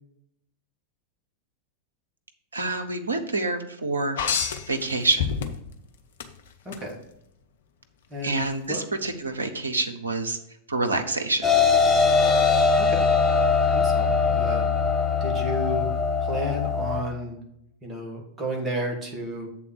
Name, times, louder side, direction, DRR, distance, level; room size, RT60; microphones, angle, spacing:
voice 1, 2.5-5.3 8.2-10.4 10.7-11.5, right 2 dB, 75° right, 6 dB, 0.8 m, -27 dB
sound 1, 4.2-5.8 6.2-6.8 8.4-8.5, left 7 dB, 60° left, 0.7 m, -28 dB
voice 2, 6.7-7.0 8.1-8.4 8.7-8.8 12.8-13.0 13.7-14.6 15.2-15.9 16.2-17.4 17.8-19.5, equal, 15° right, -1 dB, 1.7 m, -32 dB
sound 2, 11.4-17.0, left 5 dB, 5° left, 1.2 m, -21 dB
7.5 x 3.7 x 6.4 m, 0.78 s
figure-of-eight pair, 90°, 0 cm